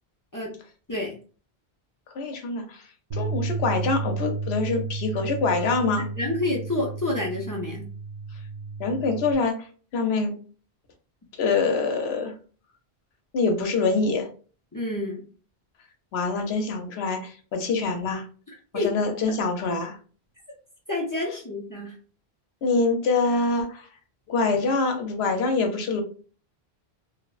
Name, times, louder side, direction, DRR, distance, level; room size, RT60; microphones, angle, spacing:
voice 1, 2.1-2.8 3.1-6.1 8.8-9.7 9.9-10.3 11.4-12.3 13.3-14.3 16.1-18.2 18.7-20.0 22.6-23.9 24.3-26.0, left 4 dB, 80° left, 5 dB, 0.8 m, -25 dB
Bass guitar, 3.1-9.4, right 4 dB, 55° right, 0.5 m, -32 dB
voice 2, 6.0-7.9 14.7-15.2 18.7-18.9 20.9-21.9, left 2 dB, 35° left, -3 dB, 0.3 m, -28 dB
2.9 x 2.0 x 2.3 m, 0.40 s
omnidirectional pair, 1.1 m